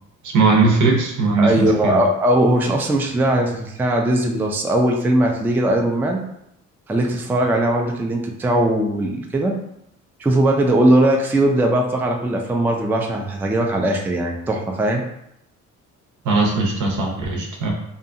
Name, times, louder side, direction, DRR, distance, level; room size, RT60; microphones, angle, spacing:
voice 1, 0.2-2.0 16.2-17.7, right 3 dB, 75° right, 0 dB, 0.8 m, -19 dB
voice 2, 1.4-6.2 6.9-9.6 10.2-15.0, right 1 dB, 5° right, 2 dB, 0.3 m, -19 dB
2.7 x 2.3 x 2.5 m, 0.78 s
cardioid pair, 90°, 30 cm